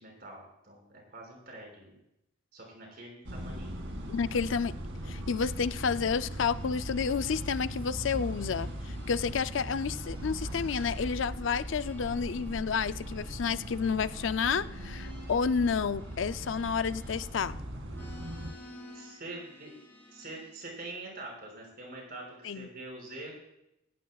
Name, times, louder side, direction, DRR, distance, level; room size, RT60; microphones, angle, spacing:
voice 1, 0.0-2.0 2.5-3.8 18.9-19.7 20.1-23.3, right 2 dB, 50° right, -1 dB, 5.8 m, -45 dB
sound 1, 3.3-18.5, equal, 80° right, 2.3 m, -39 dB
voice 2, 4.1-4.7 5.1-17.6 22.4-22.7, left 6 dB, 75° left, 13 dB, 0.5 m, -30 dB
sound 2, 4.9-7.7 8.0-17.5 17.9-20.6 21.3-22.6, left 1 dB, 10° left, 6.4 m, -54 dB
18.0 x 16.5 x 2.4 m, 0.84 s
head